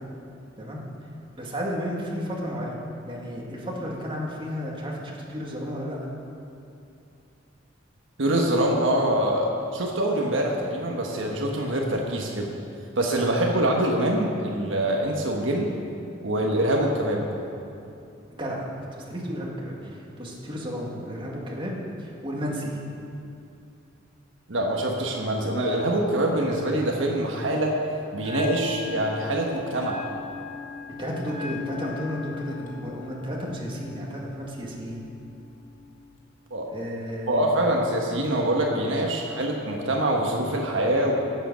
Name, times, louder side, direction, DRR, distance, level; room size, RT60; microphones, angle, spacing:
voice 1, 1.4-2.8 3.1-6.0 13.3-13.4 18.4-18.7 19.1-21.7 22.0-22.8 31.0-35.0 36.7-37.6, equal, 25° right, -3 dB, 2.2 m, -33 dB
voice 2, 8.2-12.5 13.0-15.7 16.2-17.2 24.5-27.7 28.1-30.0 36.5-36.7 37.3-41.2, right 1 dB, 70° right, 0 dB, 1.4 m, -24 dB
Bell, 28.2-36.2, left 5 dB, 45° left, 1.6 m, -40 dB
15.5 x 8.0 x 6.4 m, 2.6 s
head